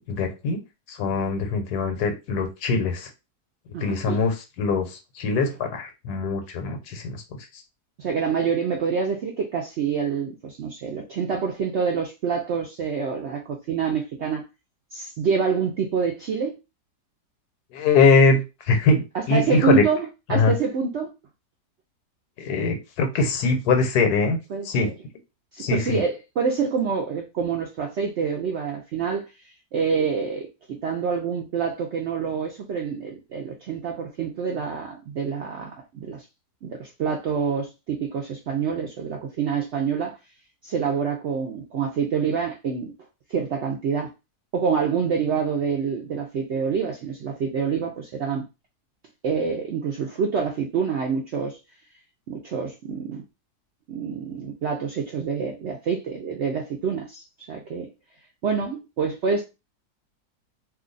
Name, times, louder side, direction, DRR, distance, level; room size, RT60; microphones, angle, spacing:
voice 1, 0.1-0.6 0.9-3.1 3.8-7.2 17.7-19.8 20.3-20.5 22.4-24.4 24.6-24.9 25.6-26.0, left 4 dB, 75° left, 1.2 m, -22 dB
voice 2, 3.7-4.2 8.0-14.5 14.9-16.6 19.1-21.1 24.5-24.9 25.5-29.2 29.7-30.5 30.8-36.2 36.6-40.1 40.6-42.9 43.3-44.1 44.5-48.4 49.2-51.6 52.3-53.2 53.9-57.9 58.4-59.4, right 6 dB, 70° right, 0.6 m, -26 dB
2.7 x 2.2 x 3.8 m
omnidirectional pair, 1.7 m